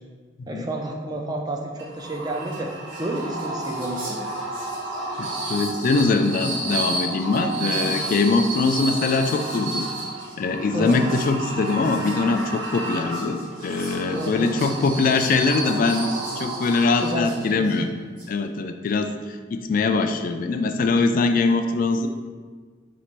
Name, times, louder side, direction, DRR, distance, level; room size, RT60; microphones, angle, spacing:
voice 1, 0.5-2.7 3.0-4.2 7.6-7.9 10.7-11.0 14.1-14.5 17.0-17.7, right 1 dB, 20° right, 1 dB, 0.4 m, -30 dB
sound 1, 1.8-17.5, right 2 dB, 65° right, 0.7 m, -31 dB
Whispering, 2.1-2.2 2.4-18.3, right 1 dB, 50° right, 1.5 m, -45 dB
voice 2, 5.2-9.9 10.4-16.1 16.4-18.0 18.3-19.1 19.5-22.1, left 3 dB, 45° left, 7 dB, 0.3 m, -22 dB
4.1 x 2.5 x 4.4 m, 1.5 s
head